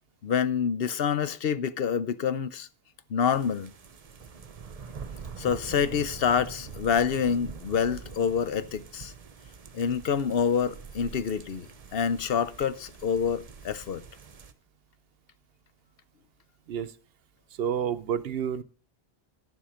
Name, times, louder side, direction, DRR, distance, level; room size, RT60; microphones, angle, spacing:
voice 1, 0.2-2.7 3.1-3.7 5.4-9.1 9.7-11.7 11.9-14.0, left 7 dB, 70° left, 0.9 m, -27 dB
sound 1, 3.3-14.5, right 6 dB, 40° right, 0.8 m, -45 dB
voice 2, 17.6-18.6, right 8 dB, 75° right, 0.9 m, -29 dB
11.0 x 7.3 x 5.0 m
omnidirectional pair, 1.0 m